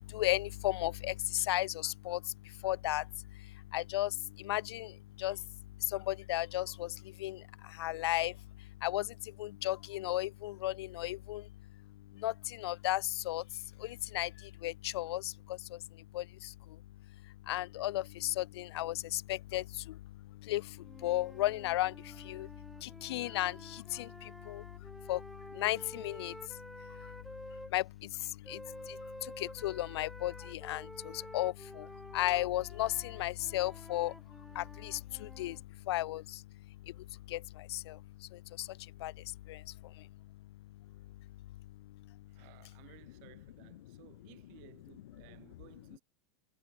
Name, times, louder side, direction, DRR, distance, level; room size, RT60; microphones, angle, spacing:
voice 1, 0.1-2.2 2.6-3.0 3.7-4.1 4.5-4.9 5.2-5.4 6.1-6.9 7.2-7.4 7.8-8.3 8.8-9.0 9.4-11.4 12.2-12.3 12.6-13.0 13.3-13.4 14.1-14.3 14.6-15.2 16.1-16.2 17.5-19.6 20.5-20.6 21.0-21.9 22.3-22.5 22.8-23.6 23.9-24.1 24.5-24.6 25.1-25.2 25.6-26.3 27.7-27.8 28.5-28.6 29.6-30.8 31.3-31.5 32.1-34.1 34.6-34.9 35.4-35.5 35.9-36.2 37.3-37.4 39.0-39.1, left 15 dB, 75° left, 0.9 m, -33 dB
sound 1, 20.8-27.7 28.4-35.6, equal, ahead, 1.0 m, -50 dB
voice 2, 42.3-46.0, right 40 dB or more, 50° right, 7.7 m, -58 dB
supercardioid pair, 155°, 14 cm